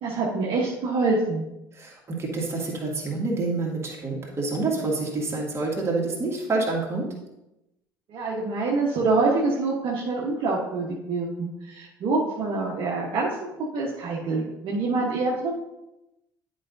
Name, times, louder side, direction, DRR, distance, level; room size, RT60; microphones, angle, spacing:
voice 1, 0.0-1.4 8.1-13.4 13.7-15.5, right 3 dB, 50° right, -4 dB, 1.3 m, -26 dB
voice 2, 1.7-7.1, right 3 dB, 25° right, -2 dB, 2.1 m, -27 dB
11.0 x 5.1 x 2.7 m, 0.93 s
figure-of-eight pair, 60°, 11 cm